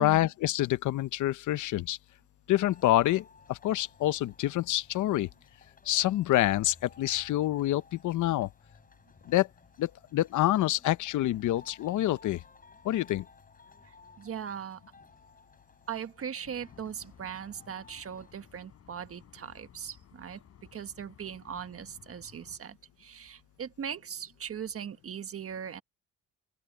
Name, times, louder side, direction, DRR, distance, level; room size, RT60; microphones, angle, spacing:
voice 1, 0.0-2.0 2.5-5.3 5.9-8.5 9.3-9.5 9.8-12.4 12.8-13.2, left 14 dB, 75° left, 0.8 m, -27 dB
sound 1, 2.5-18.3, left 4 dB, 30° left, 6.8 m, -58 dB
voice 2, 13.8-14.8 15.9-20.4 20.7-25.8, right 8 dB, 50° right, 1.4 m, -39 dB
sound 2, 16.4-22.6, left 8 dB, 55° left, 3.9 m, -57 dB
open air
cardioid pair, 90°, 30 cm